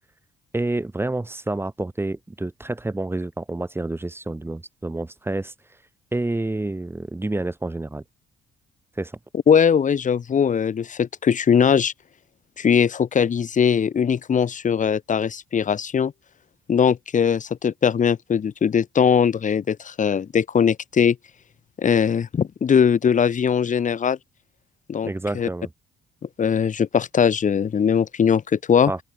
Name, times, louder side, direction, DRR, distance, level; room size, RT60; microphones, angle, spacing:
voice 1, 0.5-5.5 6.1-8.0 9.0-9.1 25.0-25.7 28.9-29.0, right 2 dB, 10° right, 0.9 m, -28 dB
voice 2, 9.3-11.9 12.6-16.1 16.7-21.2 21.8-24.2 24.9-25.5 26.4-28.9, left 7 dB, 40° left, 1.0 m, -20 dB
open air
cardioid pair, 90°, 20 cm